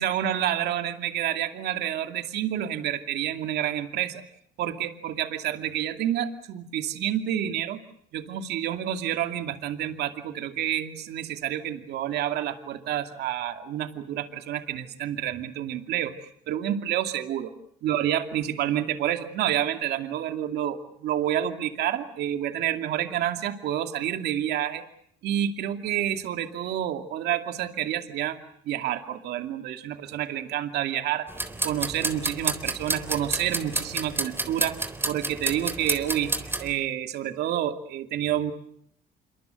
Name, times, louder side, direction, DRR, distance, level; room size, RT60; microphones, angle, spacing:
voice 1, 0.0-4.2 4.6-7.8 8.1-16.1 16.5-17.5 17.8-24.8 25.2-28.4 28.7-31.3 31.6-34.8 35.0-38.5, right 11 dB, 75° right, 6 dB, 2.5 m, -29 dB
sound 1, 31.3-36.7, right 2 dB, 15° right, 3.7 m, -30 dB
27.0 x 24.0 x 8.0 m, 0.69 s
cardioid pair, 110°, 17 cm